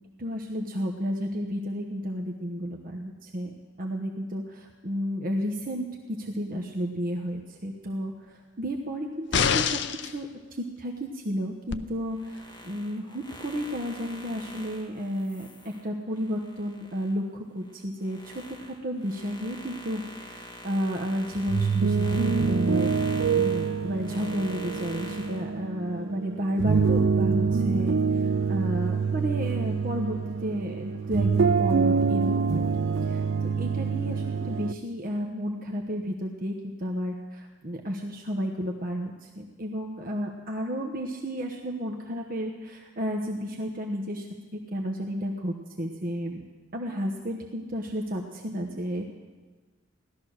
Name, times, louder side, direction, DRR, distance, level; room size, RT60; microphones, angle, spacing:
voice 1, 0.2-3.5 3.8-22.9 23.3-32.6 33.0-44.3 44.5-46.4 46.7-49.1, equal, 45° right, 1 dB, 1.1 m, -32 dB
sound 1, 9.3-10.1 11.7-11.8, left 7 dB, 65° left, 0.6 m, -25 dB
sound 2, 12.1-17.2 17.6-25.5, left 1 dB, 25° left, 1.6 m, -45 dB
sound 3, 21.4-34.7, right 5 dB, 75° right, 0.5 m, -26 dB
17.0 x 12.5 x 6.4 m, 1.3 s
head